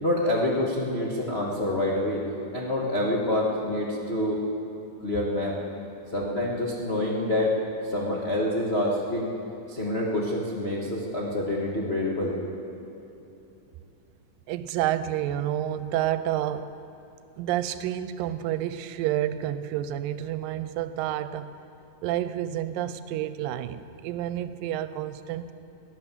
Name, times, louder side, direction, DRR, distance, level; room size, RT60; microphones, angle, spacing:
voice 1, 0.0-2.2 2.5-4.4 5.0-5.6 6.1-7.5 7.8-9.3 9.7-12.4, left 1 dB, 70° left, -4 dB, 0.6 m, -27 dB
voice 2, 14.5-16.8 17.4-21.6 22.0-25.5, right 12 dB, 90° right, 13 dB, 2.3 m, -29 dB
18.0 x 10.5 x 7.4 m, 2.9 s
omnidirectional pair, 3.9 m